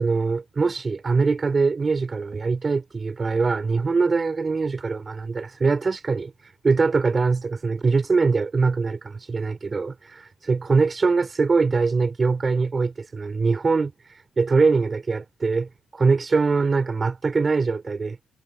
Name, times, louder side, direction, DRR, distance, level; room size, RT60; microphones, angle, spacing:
voice 1, 0.0-18.2, right 4 dB, 30° right, 3.2 m, -23 dB
cardioid pair, 90°, 0 cm